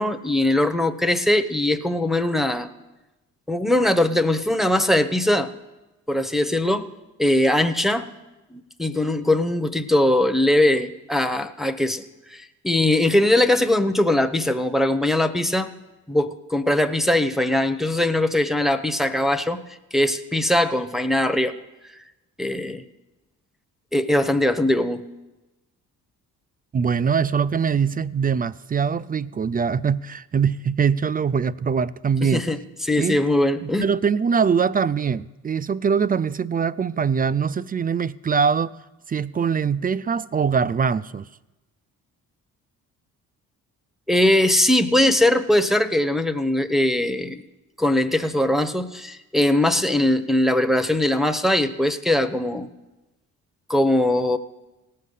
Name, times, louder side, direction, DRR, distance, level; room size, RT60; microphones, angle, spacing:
voice 1, 0.0-2.7 3.5-5.5 6.1-6.9 7.2-8.1 8.5-12.0 12.3-15.7 16.1-19.6 19.9-21.5 22.4-22.8 23.9-25.0 32.2-33.8 44.1-47.4 47.8-52.7 53.7-54.4, left 1 dB, ahead, 7 dB, 0.8 m, -21 dB
voice 2, 26.7-32.4 33.0-33.2 33.6-38.7 39.1-41.3, right 6 dB, 25° right, 17 dB, 0.3 m, -22 dB
18.0 x 6.6 x 5.5 m, 1.1 s
hypercardioid pair, 55°, 39 cm